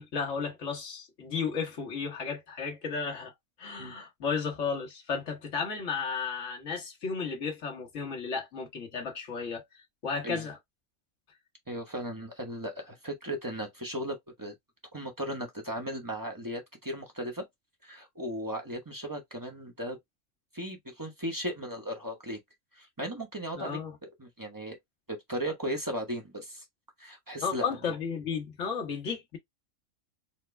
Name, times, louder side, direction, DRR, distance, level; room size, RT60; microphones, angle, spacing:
voice 1, 0.0-3.3 3.6-10.6 23.5-24.0 27.4-29.4, left 5 dB, 60° left, 1.5 m, -34 dB
voice 2, 11.7-14.5 14.9-17.4 17.8-20.0 20.5-22.4 22.7-24.8 25.1-26.7 27.0-27.7, equal, 20° right, 0.8 m, -36 dB
4.3 x 2.1 x 3.2 m
omnidirectional pair, 1.4 m